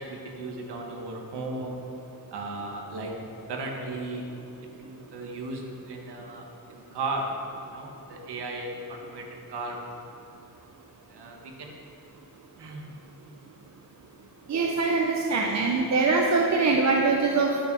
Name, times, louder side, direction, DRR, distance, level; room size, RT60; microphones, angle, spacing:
voice 1, 0.0-1.8 2.3-9.9 11.1-11.8 12.6-12.9 14.5-14.8, right 2 dB, 90° right, 1 dB, 1.8 m, -36 dB
voice 2, 14.5-17.6, right 3 dB, 45° right, 1 dB, 0.8 m, -23 dB
10.5 x 9.0 x 6.3 m, 2.9 s
wide cardioid pair, 160°, 39 cm